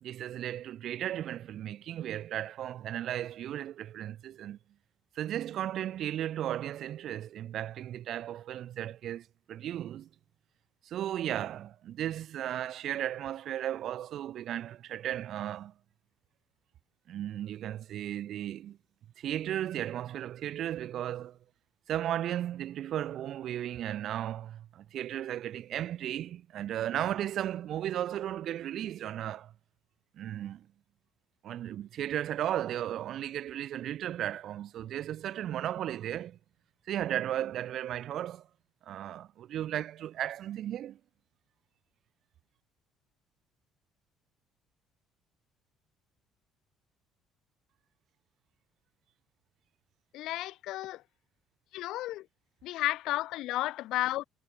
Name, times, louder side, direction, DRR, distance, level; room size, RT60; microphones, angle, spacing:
voice 1, 0.0-4.6 5.2-10.1 10.8-15.7 17.1-18.8 19.2-21.4 21.9-29.5 30.1-30.7 31.4-36.4 36.9-38.5 38.8-41.0, right 11 dB, 45° right, 0.5 m, -35 dB
voice 2, 50.1-51.0 51.7-52.3 52.6-54.2, left 16 dB, 60° left, 0.5 m, -32 dB
cardioid pair, 175°, 0 cm